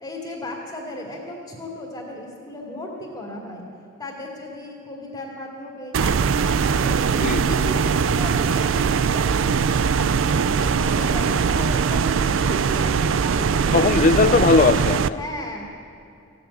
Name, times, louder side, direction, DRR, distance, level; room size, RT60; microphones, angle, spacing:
voice 1, 0.0-3.6 4.0-7.1 7.5-10.2 10.6-14.6 15.1-15.7, left 1 dB, 15° left, -3 dB, 2.3 m, -35 dB
sound 1, 5.9-15.1, right 6 dB, 65° right, 0.4 m, -21 dB
voice 2, 13.7-15.2, left 4 dB, 35° left, 13 dB, 0.4 m, -18 dB
16.0 x 8.5 x 9.7 m, 2.5 s
head